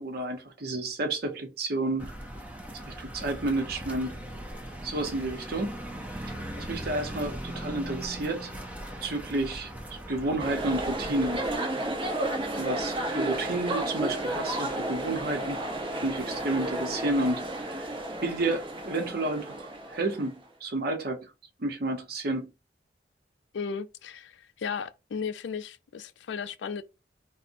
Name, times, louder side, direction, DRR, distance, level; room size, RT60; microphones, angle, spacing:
voice 1, 0.0-2.1 3.0-4.2 4.8-5.8 6.2-8.5 9.0-11.5 12.6-15.6 16.0-17.9 18.2-21.3 21.6-22.5, right 2 dB, 60° right, 0.8 m, -31 dB
sound 1, 2.0-11.6, right 1 dB, 10° right, 0.5 m, -39 dB
sound 2, 10.4-20.3, right 1 dB, 30° right, 0.9 m, -32 dB
voice 2, 23.5-26.8, left 6 dB, 80° left, 0.4 m, -35 dB
4.1 x 2.1 x 2.6 m
head